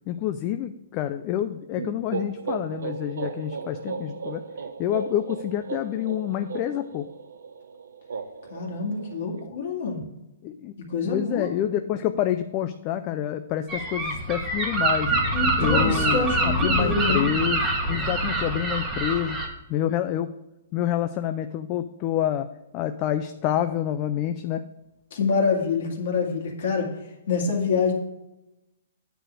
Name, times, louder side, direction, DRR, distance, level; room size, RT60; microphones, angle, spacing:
voice 1, 0.1-4.4 4.8-7.1 10.4-10.7 11.0-15.1 15.6-19.4 19.7-20.3 20.7-22.5 22.7-24.6, left 11 dB, 25° left, 9 dB, 0.3 m, -27 dB
sound 1, 1.7-9.5, right 5 dB, 90° right, 0.7 m, -36 dB
voice 2, 8.5-10.0 10.9-11.5 15.3-17.3 25.1-26.9 27.3-27.9, left 4 dB, 60° left, -1 dB, 2.1 m, -26 dB
Gull seagull, 13.7-19.5, right 2 dB, 15° right, 1.3 m, -25 dB
9.2 x 4.1 x 6.5 m, 0.93 s
hypercardioid pair, 165°, 0 cm